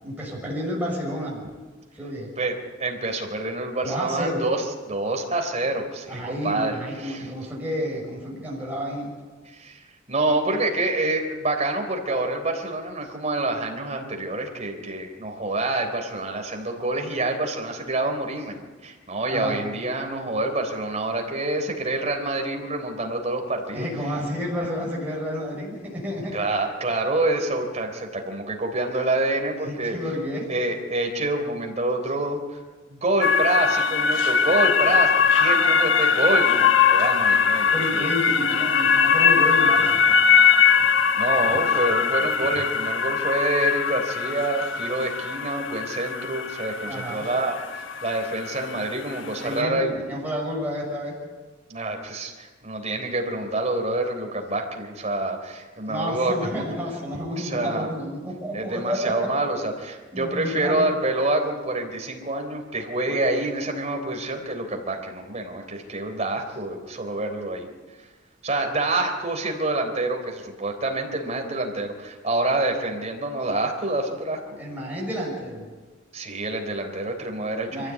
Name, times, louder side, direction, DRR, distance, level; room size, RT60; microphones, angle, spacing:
voice 1, 0.0-1.4 1.9-2.3 3.8-4.4 6.1-9.1 19.3-19.6 23.7-26.4 29.6-30.5 37.7-39.9 46.9-47.3 49.4-51.2 55.9-59.3 60.1-60.9 63.0-63.2 74.6-75.7 77.7-77.9, equal, 10° right, -4 dB, 6.4 m, -30 dB
voice 2, 2.4-6.7 7.0-7.3 9.5-9.8 10.1-23.9 26.3-30.0 30.5-32.6 32.9-38.1 41.2-50.0 51.7-56.7 57.4-57.9 58.5-67.7 68.4-74.6 76.1-77.9, right 2 dB, 35° right, 3 dB, 3.6 m, -27 dB
sound 1, 33.2-49.6, left 6 dB, 80° left, 1.1 m, -21 dB
24.0 x 15.0 x 8.5 m, 1.3 s
head